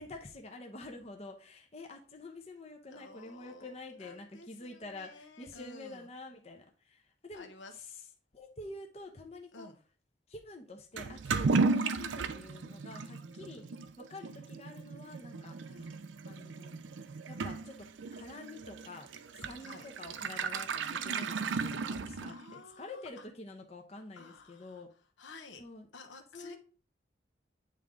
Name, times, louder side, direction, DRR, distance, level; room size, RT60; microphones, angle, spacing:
voice 1, 0.0-7.5 8.3-9.7 10.3-13.6 14.0-16.0 16.2-16.8 17.3-17.9 18.1-22.3 22.8-24.9 25.6-25.9 26.3-26.6, left 2 dB, 35° left, 2 dB, 0.8 m, -48 dB
voice 2, 2.9-6.1 7.3-7.8 9.5-9.8 11.6-11.8 13.6-13.7 14.2-14.4 15.7-15.9 19.6-19.9 21.7-22.0 22.3-23.3 24.2-24.8 25.2-25.6 25.9-26.6, left 3 dB, 80° left, 4 dB, 1.0 m, -52 dB
Toilet flush / Liquid, 11.0-22.6, right 4 dB, 80° right, 0.5 m, -35 dB
9.0 x 3.5 x 3.8 m, 0.38 s
head